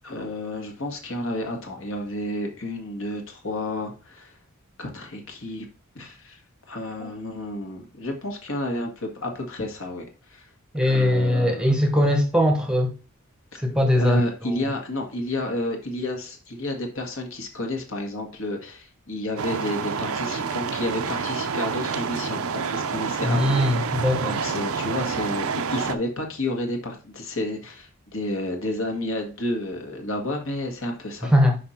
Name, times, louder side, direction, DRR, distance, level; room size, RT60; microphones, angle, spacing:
voice 1, 0.0-4.4 4.8-5.7 6.0-6.4 6.7-10.5 10.8-11.7 13.5-13.6 13.9-24.0 24.3-31.3, left 1 dB, 65° left, 1.6 m, -31 dB
voice 2, 10.7-12.9 13.6-14.2 14.5-14.7 23.2-24.4 31.2-31.6, left 1 dB, 5° right, 0.9 m, -21 dB
sound 1, 19.4-25.9, right 6 dB, 75° right, 0.6 m, -28 dB
5.8 x 5.2 x 4.3 m
head